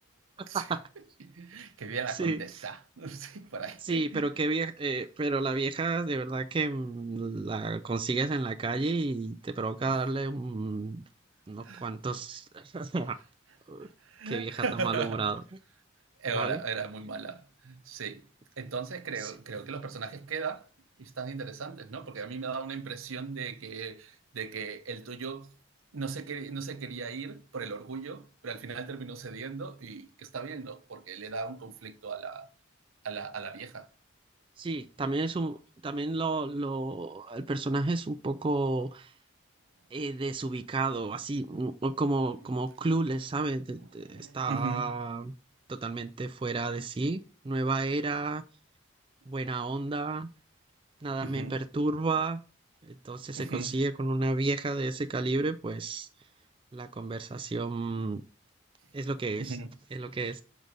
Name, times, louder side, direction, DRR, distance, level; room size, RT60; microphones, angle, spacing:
voice 1, 1.2-4.2 9.9-10.0 11.6-11.9 13.8-15.2 16.2-18.2 18.6-20.7 21.0-25.5 25.9-32.5 33.0-33.9 43.0-43.1 44.0-44.9 51.2-51.6 53.4-53.7 59.4-59.7, right 4 dB, 85° right, 0.7 m, -37 dB
voice 2, 2.1-2.4 3.8-11.0 11.5-13.2 13.7-13.9 14.3-15.4 16.3-16.6 19.2-19.3 34.6-39.1 39.9-45.3 45.7-48.4 49.3-50.3 51.0-52.4 52.8-56.1 56.7-58.2 58.9-59.6 59.9-60.4, right 3 dB, 25° right, 0.3 m, -31 dB
6.2 x 3.9 x 5.2 m
head